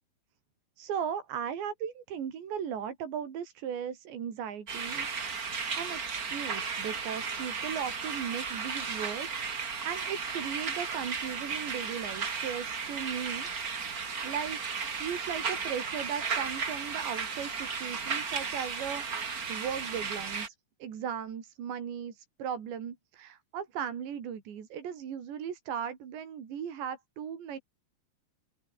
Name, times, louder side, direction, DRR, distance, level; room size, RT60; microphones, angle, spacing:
voice 1, 0.8-13.9 14.2-14.6 14.9-19.0 19.5-20.6 20.8-27.6, right 8 dB, 80° right, 5.6 m, -37 dB
sound 1, 4.7-20.5, right 5 dB, 50° right, 1.0 m, -35 dB
open air
omnidirectional pair, 5.0 m